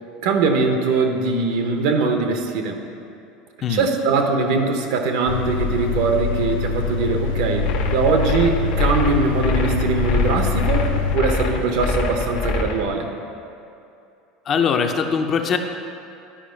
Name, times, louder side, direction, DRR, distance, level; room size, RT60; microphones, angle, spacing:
voice 1, 0.2-2.8 3.7-13.1, right 4 dB, 75° right, 4 dB, 0.9 m, -21 dB
sound 1, 5.3-11.2, left 5 dB, 90° left, 0.5 m, -24 dB
sound 2, 7.6-12.8, left 3 dB, 70° left, 1.0 m, -25 dB
voice 2, 14.5-15.6, left 6 dB, 35° left, 5 dB, 0.5 m, -21 dB
10.0 x 4.8 x 5.1 m, 2.6 s
supercardioid pair, 130°, 0 cm